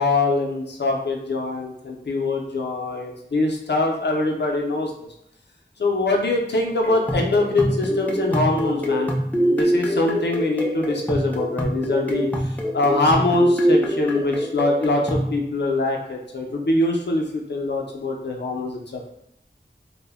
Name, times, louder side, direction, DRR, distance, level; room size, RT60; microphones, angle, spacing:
voice 1, 0.0-4.9 5.8-9.1 9.5-19.0, left 2 dB, 70° left, 1 dB, 0.4 m, -23 dB
sound 1, 6.8-15.3, equal, 10° left, 0.4 m, -24 dB
2.1 x 2.0 x 3.3 m, 0.76 s
wide cardioid pair, 55°, 19 cm